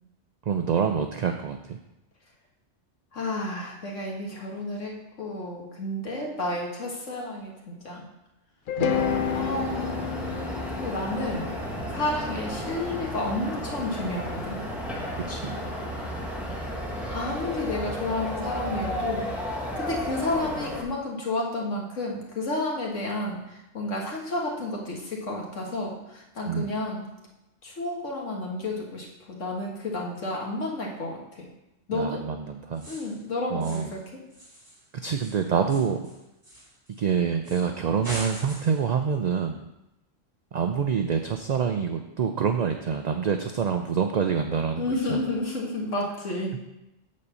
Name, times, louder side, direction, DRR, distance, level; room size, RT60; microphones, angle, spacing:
voice 1, 0.5-1.8 8.8-9.1 15.3-15.6 26.5-26.7 31.9-32.9 33.5-33.9 35.0-36.0 37.0-39.7 40.5-45.2 46.5-46.6, right 6 dB, 55° right, 6 dB, 0.4 m, -26 dB
voice 2, 3.1-4.9 5.2-8.1 9.3-10.0 10.8-11.5 11.9-14.6 16.5-16.6 17.1-19.3 19.8-23.4 23.7-27.1 27.6-31.5 31.9-32.2 32.9-34.0 44.8-46.6, left 2 dB, 85° left, -2 dB, 2.0 m, -31 dB
sound 1, 8.7-12.8, left 7 dB, 55° left, 0.6 m, -30 dB
sound 2, 8.9-20.8, equal, ahead, 1.3 m, -33 dB
sound 3, 32.7-33.2 33.6-34.0 34.3-37.0 37.4-37.7 38.0-38.9, right 1 dB, 15° right, 3.4 m, -41 dB
8.4 x 4.0 x 6.9 m, 0.93 s
omnidirectional pair, 1.2 m